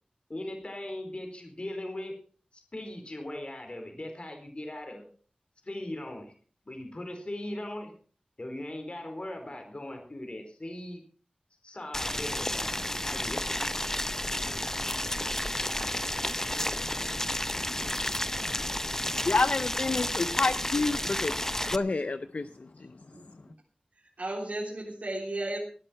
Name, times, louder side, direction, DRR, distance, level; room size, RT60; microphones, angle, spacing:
voice 1, 0.3-2.1 2.5-5.1 5.6-6.3 6.6-7.9 8.4-11.0 11.6-13.5, left 1 dB, 45° left, 4.4 m, -39 dB
Boiling, 11.9-21.8, left 1 dB, 15° left, 0.6 m, -31 dB
voice 2, 19.2-21.3 21.7-22.5, left 3 dB, 60° left, 0.6 m, -28 dB
voice 3, 23.1-23.5 24.2-25.6, right 2 dB, 70° right, 3.6 m, -35 dB
19.0 x 11.0 x 4.5 m
wide cardioid pair, 60°, 3 cm